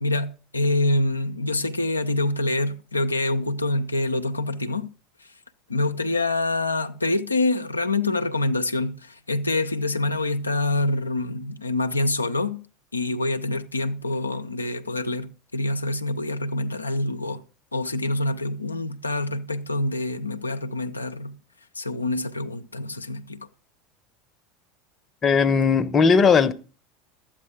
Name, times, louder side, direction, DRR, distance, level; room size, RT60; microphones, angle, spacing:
voice 1, 0.0-4.9 5.7-12.6 12.9-17.4 17.7-21.4 21.7-23.5, left 2 dB, 85° left, 0.5 m, -26 dB
voice 2, 25.2-26.5, left 5 dB, 30° left, 0.8 m, -18 dB
12.5 x 8.6 x 5.1 m
figure-of-eight pair, 75°, 0 cm